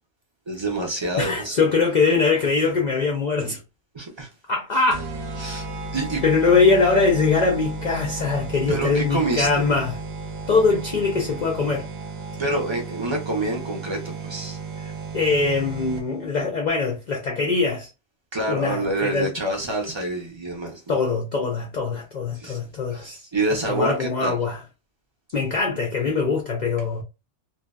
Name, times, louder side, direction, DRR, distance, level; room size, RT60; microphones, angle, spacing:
voice 1, 0.5-1.7 3.9-4.3 5.4-5.6 5.9-6.2 8.7-9.7 12.4-14.6 18.3-20.9 22.3-22.6 22.9-24.4, right 2 dB, 45° right, 0.3 m, -27 dB
voice 2, 1.2-3.6 4.5-5.1 6.2-9.9 10.5-11.9 15.1-17.9 18.5-19.3 20.9-23.3 23.7-24.6 25.3-27.0, left 4 dB, 60° left, 0.4 m, -22 dB
sound 1, 4.9-16.3, right 3 dB, 65° right, 0.7 m, -34 dB
2.6 x 2.1 x 2.2 m
omnidirectional pair, 1.3 m